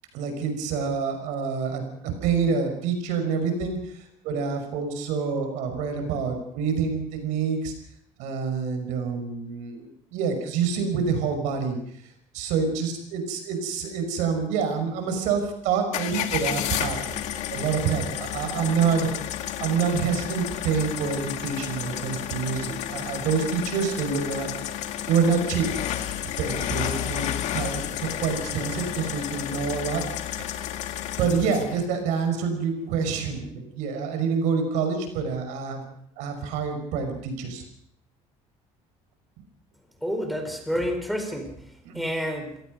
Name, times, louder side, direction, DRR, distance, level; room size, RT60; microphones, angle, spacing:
voice 1, 0.1-1.8 2.2-7.7 8.2-11.8 12.3-17.2 17.5-19.1 19.6-24.5 25.1-25.7 26.4-30.0 31.2-35.8 36.2-37.6 41.8-42.1, right 6 dB, 85° right, 6 dB, 5.7 m, -27 dB
sound 1, 15.9-31.9, left 11 dB, 70° left, 2.2 m, -31 dB
voice 2, 40.0-42.6, equal, ahead, 5 dB, 4.3 m, -29 dB
27.0 x 18.0 x 5.3 m, 0.66 s
cardioid pair, 125°, 13 cm